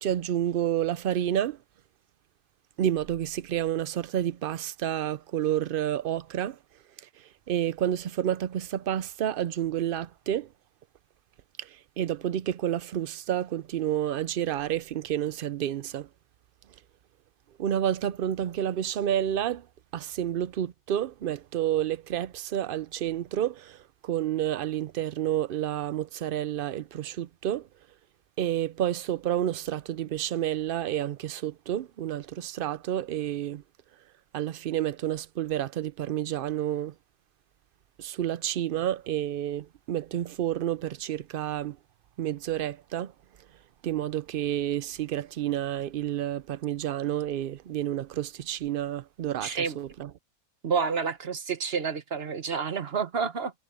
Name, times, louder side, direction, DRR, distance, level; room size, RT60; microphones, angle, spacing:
voice 1, 0.0-1.6 2.8-6.6 7.5-10.5 11.6-16.1 17.6-19.7 19.9-27.7 28.4-33.6 34.3-36.9 38.0-41.8 42.2-43.1 43.8-50.1, right 11 dB, 75° right, 0.5 m, -30 dB
voice 2, 49.4-49.8 50.6-53.5, right 6 dB, 45° right, 1.2 m, -29 dB
omnidirectional pair, 1.6 m